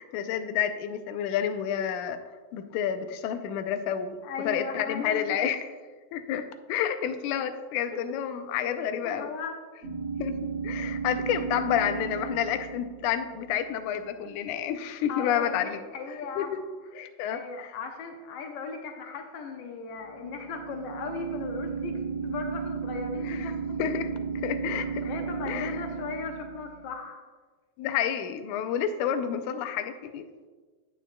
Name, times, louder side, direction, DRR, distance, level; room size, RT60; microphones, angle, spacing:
voice 1, 0.0-2.2 2.5-4.2 4.5-5.7 6.1-9.3 10.2-10.4 10.6-15.8 16.4-16.6 17.0-17.8 23.2-23.5 23.8-24.1 24.4-25.1 25.5-25.8 27.8-30.3, left 9 dB, 85° left, 9 dB, 2.0 m, -29 dB
voice 2, 4.2-5.4 7.9-8.1 8.6-8.8 9.0-9.6 11.7-11.8 15.1-16.5 17.3-23.9 24.7-27.2, left 4 dB, 70° left, 4 dB, 1.6 m, -37 dB
sound 1, 9.8-13.9 19.9-26.9, right 5 dB, 45° right, 2.3 m, -34 dB
9.9 x 9.1 x 2.2 m, 1.4 s
omnidirectional pair, 3.5 m